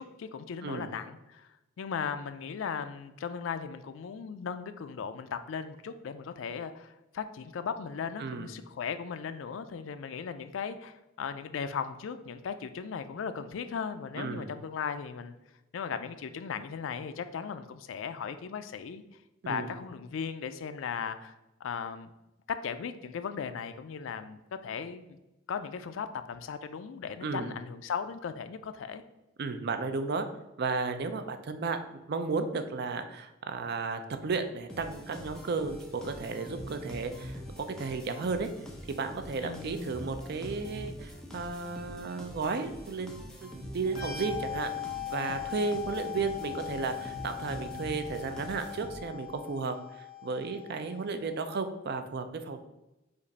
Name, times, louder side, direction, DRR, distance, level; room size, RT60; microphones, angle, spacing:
voice 1, 0.0-1.5 1.8-15.4 15.7-19.0 19.5-21.3 21.6-22.1 22.5-25.2 25.5-29.0 39.4-39.9, left 6 dB, 70° left, 11 dB, 0.4 m, -37 dB
voice 2, 8.2-8.5 14.2-14.5 19.4-19.7 27.2-27.5 29.4-30.3 30.6-31.8 32.1-38.5 38.9-44.7 45.1-52.6, right 4 dB, 55° right, 8 dB, 0.4 m, -34 dB
sound 1, 34.7-49.3, equal, 5° left, 0.6 m, -44 dB
sound 2, 43.9-51.4, left 11 dB, 35° left, 1.2 m, -40 dB
5.1 x 2.5 x 4.0 m, 0.97 s
head